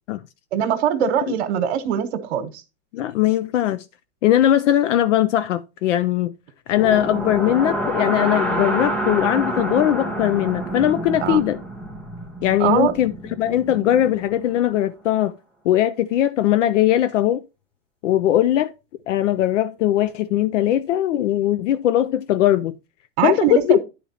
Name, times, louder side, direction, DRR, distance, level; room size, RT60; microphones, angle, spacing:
voice 1, 0.5-2.6 11.2-11.4 12.6-12.9 23.2-23.8, right 9 dB, 60° right, 1.2 m, -22 dB
voice 2, 2.9-3.8 4.2-6.3 6.7-11.6 12.4-13.1 13.4-15.3 15.6-17.4 18.0-18.7 19.1-22.8 23.2-23.8, left 12 dB, 80° left, 0.6 m, -20 dB
sound 1, 6.7-14.7, right 1 dB, 5° left, 0.5 m, -28 dB
10.0 x 4.4 x 4.3 m
supercardioid pair, 155°, 37 cm